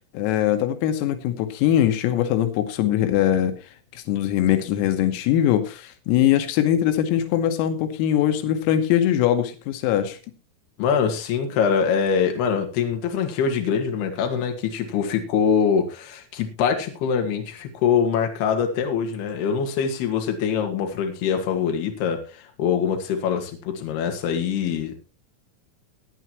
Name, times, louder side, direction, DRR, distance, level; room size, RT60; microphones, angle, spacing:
voice 1, 0.1-3.6 4.0-10.2, left 11 dB, 90° left, 8 dB, 3.8 m, -21 dB
voice 2, 10.8-25.0, left 7 dB, 60° left, 4 dB, 3.5 m, -24 dB
20.5 x 9.4 x 3.0 m, 0.32 s
omnidirectional pair, 5.9 m